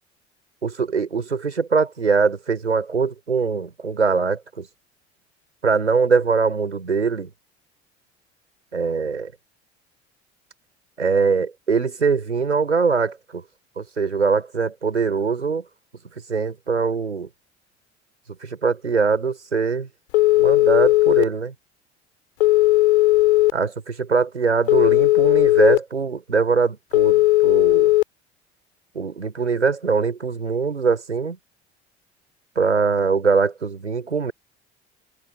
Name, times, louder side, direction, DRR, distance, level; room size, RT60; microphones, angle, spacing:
voice 1, 0.6-4.7 5.6-7.3 8.7-9.3 11.0-13.4 13.8-15.6 16.3-17.3 18.4-19.9 20.4-21.5 23.5-27.9 28.9-31.4 32.5-34.3, right 5 dB, 90° right, 5.0 m, -22 dB
Telephone, 20.1-21.2 22.4-23.5 24.7-25.8 26.9-28.0, left 18 dB, 70° left, 3.5 m, -16 dB
figure-of-eight pair, 60°, 33 cm